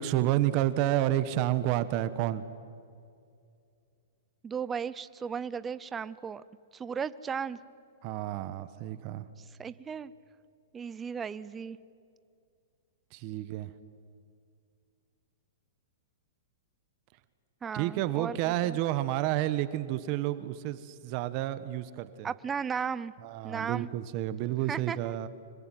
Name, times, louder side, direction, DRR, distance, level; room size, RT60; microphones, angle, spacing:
voice 1, 0.0-2.4 8.0-9.2 13.1-13.7 17.7-22.3 23.2-25.3, right 14 dB, 40° right, 13 dB, 1.1 m, -30 dB
voice 2, 4.4-6.4 6.7-7.6 9.6-10.1 10.7-11.8 17.6-18.8 22.2-23.1 23.4-23.9 24.7-25.1, right 6 dB, 15° right, 16 dB, 0.6 m, -35 dB
25.5 x 21.5 x 9.2 m, 2.4 s
hypercardioid pair, 145°, 0 cm